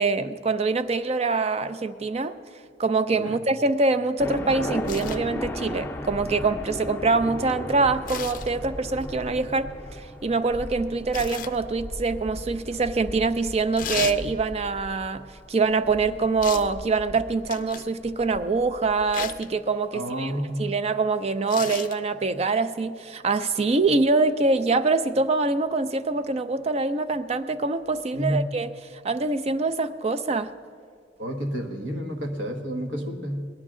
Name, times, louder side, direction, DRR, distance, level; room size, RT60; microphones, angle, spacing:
voice 1, 0.0-2.4 2.8-15.2 15.5-28.7 29.0-30.5, right 3 dB, 35° right, 12 dB, 0.4 m, -24 dB
sound 1, 4.2-19.3, left 1 dB, 10° left, 0.7 m, -36 dB
sound 2, 4.9-5.2 8.1-8.5 11.1-11.6 13.8-14.2 16.4-16.7 17.5-17.9 19.1-19.5 21.5-22.0 23.4-23.5, left 8 dB, 45° left, 0.5 m, -34 dB
voice 2, 19.9-20.7 28.1-28.5 31.2-33.5, equal, 85° right, 4 dB, 1.3 m, -30 dB
18.5 x 11.5 x 3.7 m, 2.1 s
head